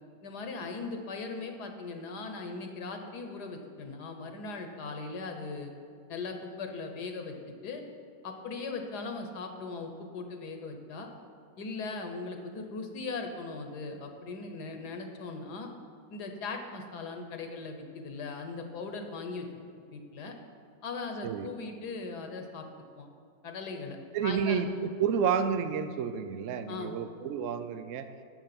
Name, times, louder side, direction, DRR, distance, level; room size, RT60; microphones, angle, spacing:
voice 1, 0.2-5.7 6.1-7.3 7.6-7.8 8.2-11.1 11.6-15.7 16.1-19.5 19.7-20.3 20.8-22.7 22.9-23.1 23.4-24.0 24.2-24.6 26.7-26.9, left 3 dB, 65° left, 5 dB, 1.4 m, -39 dB
voice 2, 24.1-28.1, right 7 dB, 85° right, 10 dB, 0.6 m, -30 dB
10.5 x 6.7 x 5.9 m, 2.3 s
omnidirectional pair, 2.0 m